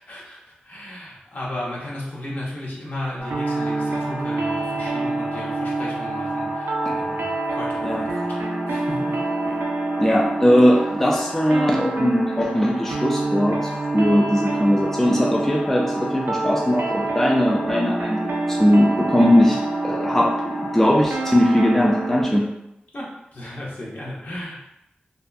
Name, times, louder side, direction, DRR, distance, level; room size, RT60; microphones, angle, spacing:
voice 1, 0.0-8.4 8.7-9.2 9.4-9.6 22.9-24.6, left 1 dB, 60° left, -5 dB, 0.8 m, -34 dB
sound 1, 3.2-22.2, right 1 dB, 35° left, 0.9 m, -33 dB
sound 2, 3.3-22.4, right 2 dB, 90° right, 0.3 m, -27 dB
voice 2, 10.0-22.5, equal, 10° left, -1 dB, 0.3 m, -19 dB
2.6 x 2.2 x 2.3 m, 0.84 s
cardioid pair, 50°, 3 cm